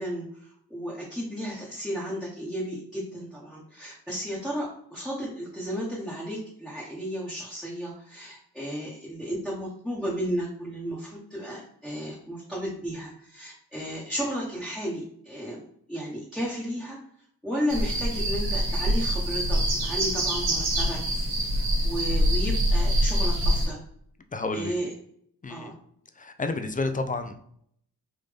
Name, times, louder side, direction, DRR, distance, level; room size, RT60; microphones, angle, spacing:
voice 1, 0.0-15.6 15.9-17.0 17.4-21.0 21.5-23.8 24.5-24.9 25.5-25.7, equal, ahead, -6 dB, 1.0 m, -33 dB
sound 1, 17.7-23.7, equal, 65° right, 1.3 m, -25 dB
voice 2, 24.3-24.7 25.4-25.7 26.2-27.6, left 3 dB, 20° left, 8 dB, 0.4 m, -31 dB
3.5 x 2.6 x 3.4 m, 0.67 s
cardioid pair, 65°, 40 cm